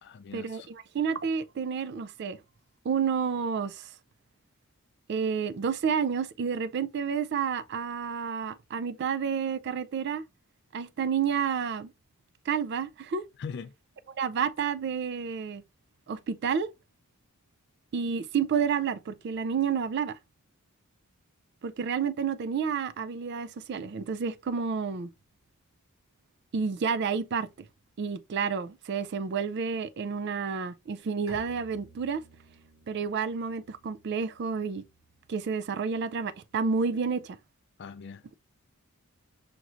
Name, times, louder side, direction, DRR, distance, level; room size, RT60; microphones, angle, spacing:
voice 1, 0.0-0.7 13.4-13.7 37.8-38.4, left 5 dB, 50° left, 0.4 m, -41 dB
voice 2, 0.9-2.4 2.8-3.9 5.1-10.2 10.7-11.9 12.5-13.2 14.2-15.6 16.1-16.7 17.9-20.2 21.6-25.1 26.5-27.5 28.0-32.2 32.9-34.8 35.3-37.4, right 6 dB, 50° right, 0.3 m, -30 dB
Bowed string instrument, 31.3-36.9, equal, 65° right, 1.5 m, -55 dB
5.0 x 3.1 x 2.4 m
head